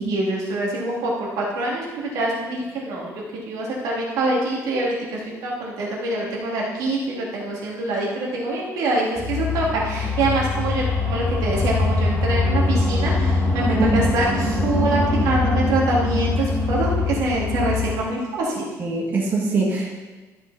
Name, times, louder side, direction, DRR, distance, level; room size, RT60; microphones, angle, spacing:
voice 1, 0.0-3.1 3.5-18.7, right 2 dB, 85° right, -4 dB, 2.7 m, -25 dB
sound 1, 9.2-18.0, left 3 dB, 20° left, 2.2 m, -23 dB
voice 2, 18.8-19.9, right 2 dB, 30° right, -5 dB, 2.0 m, -23 dB
13.0 x 5.6 x 4.2 m, 1.2 s
cardioid pair, 175°, 6 cm